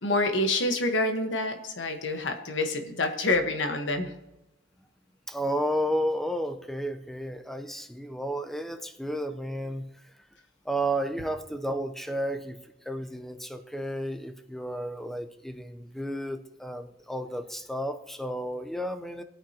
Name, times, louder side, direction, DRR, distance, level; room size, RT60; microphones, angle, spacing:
voice 1, 0.0-4.1, left 2 dB, 85° left, 5 dB, 1.2 m, -27 dB
voice 2, 5.3-9.9 10.6-12.6 12.9-19.2, right 1 dB, ahead, 7 dB, 0.6 m, -32 dB
19.5 x 8.9 x 2.9 m, 0.93 s
head